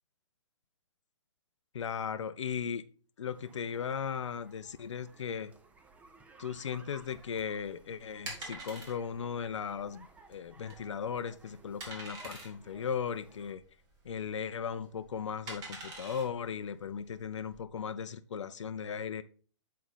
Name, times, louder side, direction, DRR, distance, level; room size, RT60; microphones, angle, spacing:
voice 1, 1.7-2.8 3.2-5.5 6.4-13.6 14.0-19.2, left 7 dB, 70° left, 0.5 m, -37 dB
sound 1, 3.3-13.5, right 3 dB, 10° right, 0.6 m, -58 dB
sound 2, 7.0-17.6, right 2 dB, 25° right, 1.9 m, -47 dB
7.8 x 4.2 x 4.1 m
figure-of-eight pair, 130°, 16 cm